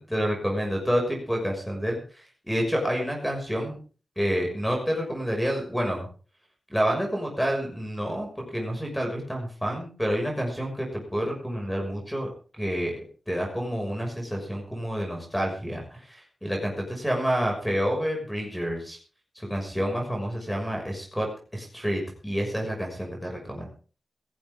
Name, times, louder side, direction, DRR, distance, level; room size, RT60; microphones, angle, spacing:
voice 1, 0.1-3.8 4.2-6.1 6.7-12.3 12.6-19.0 19.3-21.3 21.5-23.7, equal, 5° left, 1 dB, 6.2 m, -29 dB
18.5 x 15.0 x 3.7 m, 0.39 s
wide cardioid pair, 80°, 0 cm